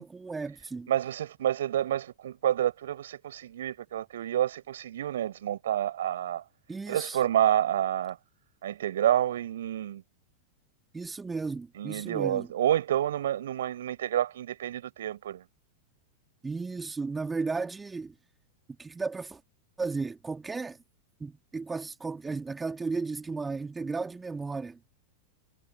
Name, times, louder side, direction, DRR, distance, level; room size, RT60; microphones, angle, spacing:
voice 1, 0.0-0.9 6.7-7.2 10.9-12.5 16.4-18.1 18.8-19.4 19.8-20.8 21.2-24.8, right 4 dB, 10° right, 3.0 m, -34 dB
voice 2, 0.9-6.4 6.9-8.2 8.6-10.0 11.8-15.4, right 11 dB, 60° right, 7.9 m, -28 dB
figure-of-eight pair, 90°, 0 cm